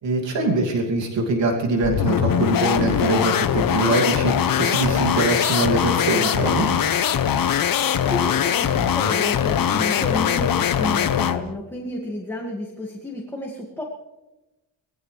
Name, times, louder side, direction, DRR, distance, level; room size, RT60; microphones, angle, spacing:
voice 1, 0.0-6.7, right 2 dB, 65° right, 0 dB, 2.8 m, -23 dB
sound 1, 1.8-11.5, left 9 dB, 45° left, 1.0 m, -21 dB
voice 2, 8.1-13.8, left 1 dB, 5° left, -2 dB, 2.2 m, -31 dB
21.0 x 16.0 x 3.4 m, 1.0 s
cardioid pair, 135°, 47 cm